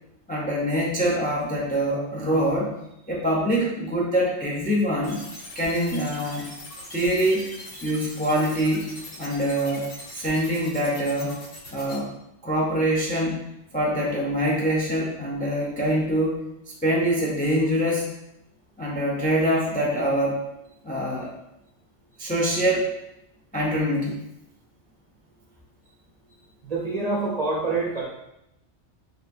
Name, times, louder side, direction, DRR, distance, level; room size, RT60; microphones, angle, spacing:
voice 1, 0.3-2.7 3.1-5.2 5.5-6.5 6.9-7.4 7.7-8.9 9.2-11.4 11.7-12.1 12.4-13.4 13.7-16.4 16.8-18.1 18.8-20.4 20.8-21.3 22.2-22.9 23.5-24.2, equal, 15° left, -2 dB, 0.3 m, -24 dB
sound 1, 5.0-12.0, left 2 dB, 85° left, 1.5 m, -41 dB
voice 2, 26.6-28.0, right 3 dB, 45° right, -3 dB, 0.5 m, -26 dB
4.3 x 3.3 x 2.6 m, 0.85 s
omnidirectional pair, 1.2 m